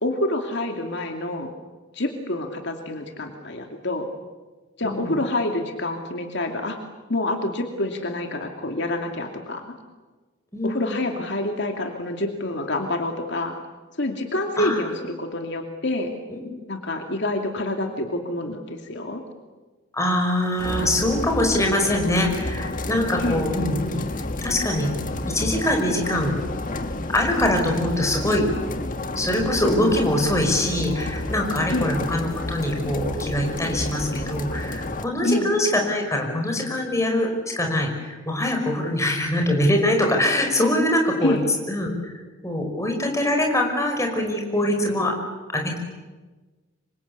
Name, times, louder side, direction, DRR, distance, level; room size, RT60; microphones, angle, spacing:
voice 1, 0.0-1.5 1.9-4.1 4.8-6.8 7.1-9.7 10.6-13.5 14.0-16.1 16.7-19.2 23.2-23.4 31.7-31.9 35.2-35.5 41.2-41.4, left 1 dB, 60° left, 3 dB, 2.6 m, -27 dB
voice 2, 4.8-5.1 10.5-11.0 14.6-14.8 16.3-16.5 19.9-24.0 24.4-24.9 25.3-26.4 27.1-28.5 29.1-41.4 41.7-41.9 42.4-45.1 45.5-45.8, left 1 dB, 15° left, 3 dB, 5.2 m, -23 dB
sound 1, 20.6-35.0, left 2 dB, 40° left, 1.7 m, -30 dB
26.5 x 25.0 x 8.4 m, 1.3 s
head